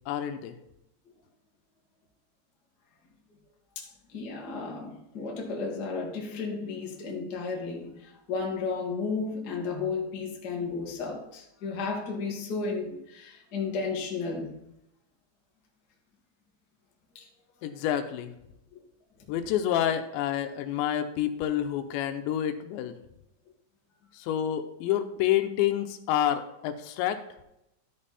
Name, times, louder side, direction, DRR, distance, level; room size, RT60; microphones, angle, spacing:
voice 1, 0.1-0.6 17.6-18.3 19.3-23.0 24.1-27.2, left 11 dB, 80° left, 8 dB, 2.9 m, -28 dB
voice 2, 3.7-14.6 17.1-17.3, left 4 dB, 55° left, -2 dB, 1.1 m, -33 dB
12.5 x 5.4 x 4.2 m, 0.84 s
omnidirectional pair, 5.2 m